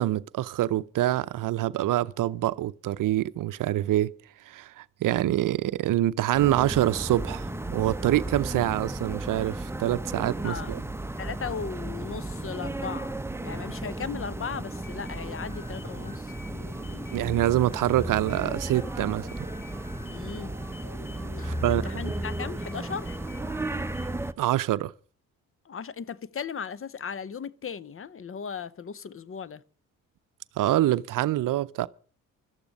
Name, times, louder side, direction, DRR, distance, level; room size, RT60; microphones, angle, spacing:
voice 1, 0.0-4.1 4.5-10.8 17.1-19.3 21.4-22.0 24.4-24.9 30.6-31.9, right 14 dB, 65° right, 0.7 m, -26 dB
sound 1, 6.3-24.3, right 1 dB, 5° right, 0.9 m, -34 dB
voice 2, 11.2-16.3 20.0-20.5 21.4-23.2 25.6-29.6, left 6 dB, 40° left, 0.9 m, -37 dB
sound 2, 14.7-24.3, left 3 dB, 65° left, 2.6 m, -49 dB
16.5 x 12.5 x 5.3 m
supercardioid pair, 65°, 35 cm